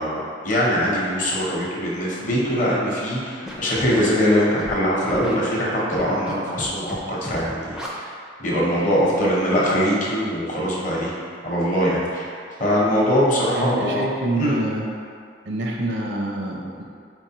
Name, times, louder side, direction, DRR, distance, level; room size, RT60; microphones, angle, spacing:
voice 1, 0.0-8.1 8.4-11.1 11.4-12.3 12.6-14.0 14.3-14.5, equal, 40° left, -5 dB, 0.8 m, -22 dB
Scratching (performance technique), 3.4-4.0 4.6-4.7 5.1-5.3 5.9-6.3 6.6-7.0 7.2-7.4 7.7-7.9, equal, 5° right, 0.4 m, -33 dB
voice 2, 13.6-14.9 15.5-16.8, right 1 dB, 65° right, 0 dB, 0.6 m, -26 dB
4.5 x 4.0 x 2.9 m, 2.3 s
head